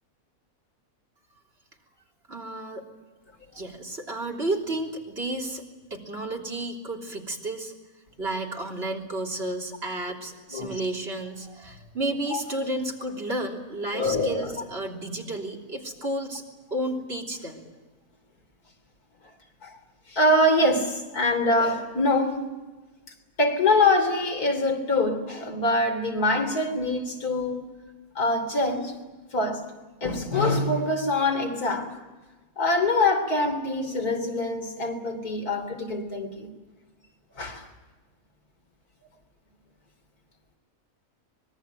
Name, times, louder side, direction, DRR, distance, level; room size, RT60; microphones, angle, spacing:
voice 1, 2.3-2.8 3.5-5.6 5.9-7.7 8.2-16.4 16.7-17.6, right 1 dB, 40° right, 3.6 m, -32 dB
voice 2, 13.9-14.6 19.6-19.8 20.1-22.4 23.4-27.6 28.2-28.9 29.3-29.6 30.0-31.9 32.6-36.5 37.4-37.7, left 2 dB, 90° left, 3.8 m, -24 dB
24.5 x 21.5 x 9.1 m
omnidirectional pair, 1.6 m